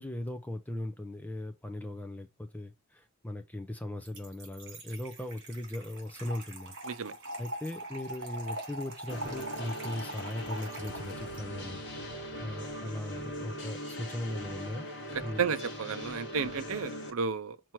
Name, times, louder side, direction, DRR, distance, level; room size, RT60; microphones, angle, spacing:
voice 1, 0.0-6.7 7.4-11.8 12.4-15.4, left 1 dB, 5° left, 0.5 m, -38 dB
Trickle dribble / Fill (with liquid), 4.1-11.4, right 1 dB, 55° right, 2.8 m, -42 dB
sound 1, 9.1-17.1, equal, 55° left, 2.5 m, -40 dB
sound 2, 10.7-13.9, left 2 dB, 90° left, 1.0 m, -53 dB
voice 2, 15.4-17.7, right 6 dB, 70° right, 0.6 m, -33 dB
6.2 x 4.5 x 4.5 m
head